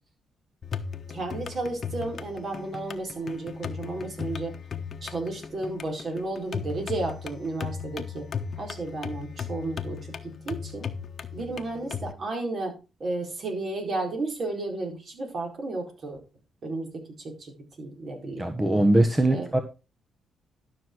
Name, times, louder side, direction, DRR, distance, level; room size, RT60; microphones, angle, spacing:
sound 1, 0.6-12.1, left 6 dB, 45° left, 1.2 m, -36 dB
voice 1, 1.1-4.6 5.0-8.2 8.6-10.9 11.3-16.2 16.6-18.7 19.3-19.5, right 2 dB, 50° right, 2 dB, 4.5 m, -33 dB
voice 2, 18.4-19.6, right 1 dB, 15° right, 7 dB, 1.2 m, -21 dB
12.0 x 6.2 x 4.6 m, 0.30 s
cardioid pair, 105°, 0 cm